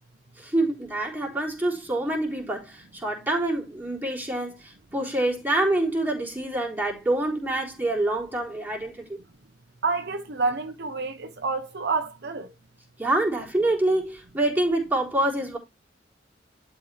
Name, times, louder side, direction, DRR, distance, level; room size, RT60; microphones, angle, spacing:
voice 1, 0.4-9.2 13.0-15.6, right 1 dB, 10° right, 3.7 m, -26 dB
voice 2, 9.8-12.5, right 4 dB, 65° right, 0.9 m, -28 dB
12.0 x 4.5 x 3.4 m
head